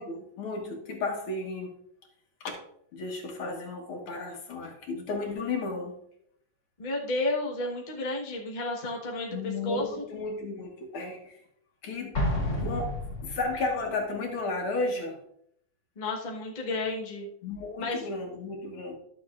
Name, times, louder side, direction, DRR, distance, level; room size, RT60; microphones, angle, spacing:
voice 1, 0.0-1.8 2.4-2.5 2.9-5.9 9.3-11.4 11.8-12.2 12.5-12.9 13.2-15.2 17.4-19.0, left 3 dB, 75° left, 1 dB, 2.3 m, -33 dB
voice 2, 6.8-10.0 16.0-17.3 17.8-18.1, left 2 dB, 25° left, -1 dB, 1.1 m, -32 dB
Explosion, 12.1-13.8, left 1 dB, 50° left, 2.5 m, -30 dB
11.5 x 6.9 x 2.5 m, 0.70 s
omnidirectional pair, 2.4 m